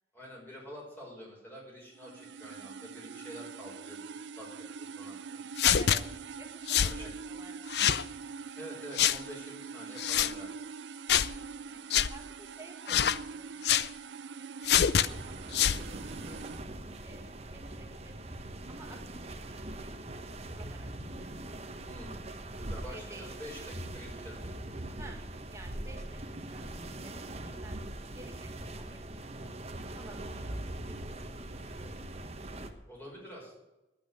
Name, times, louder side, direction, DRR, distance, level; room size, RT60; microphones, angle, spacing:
voice 1, 0.1-4.5 4.8-5.4 6.8-7.1 8.6-10.5 21.9-22.2 22.6-24.9 32.9-33.6, equal, 10° left, -3 dB, 5.6 m, -47 dB
sound 1, 1.9-16.6, right 5 dB, 85° right, 0.6 m, -44 dB
sound 2, 5.6-6.0 6.7-7.0 7.7-8.0 9.0-9.2 10.0-10.3 11.1-11.3 11.9-12.1 12.9-13.2 13.6-13.9 14.6-15.1 15.5-15.8, left 9 dB, 65° left, 0.5 m, -25 dB
voice 2, 7.0-8.0 11.6-13.8 14.1-15.3 15.7-16.4 17.0-18.3 18.7-20.2 20.5-20.9 21.2-21.3 22.9-23.3 25.0-26.2 26.5-26.7 27.0-27.2 27.4-27.8 28.1-29.1 29.9-30.5 30.8-32.1, right 2 dB, 15° right, 2 dB, 1.7 m, -53 dB
sound 3, 14.9-32.7, right 1 dB, 35° right, 1.2 m, -42 dB
10.5 x 9.2 x 9.5 m, 1.0 s
head